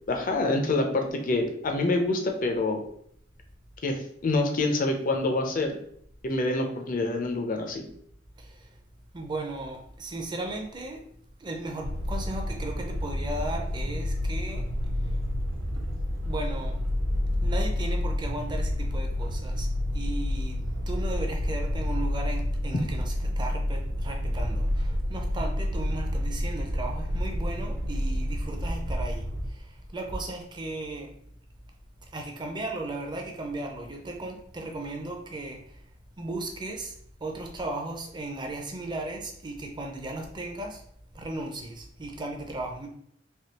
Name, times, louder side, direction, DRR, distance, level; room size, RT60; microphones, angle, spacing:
voice 1, 0.1-2.8 3.8-5.7 6.2-7.9, left 2 dB, 45° left, 3 dB, 0.5 m, -26 dB
voice 2, 8.4-8.7 9.1-11.1 11.4-14.6 16.2-16.8 17.4-19.7 19.9-31.2 32.1-35.6 36.2-36.9 37.2-40.8 41.1-42.9, right 2 dB, 25° right, 2 dB, 0.5 m, -36 dB
sound 1, 11.8-29.5, left 1 dB, 80° right, 0.6 m, -29 dB
3.4 x 2.8 x 2.8 m, 0.67 s
head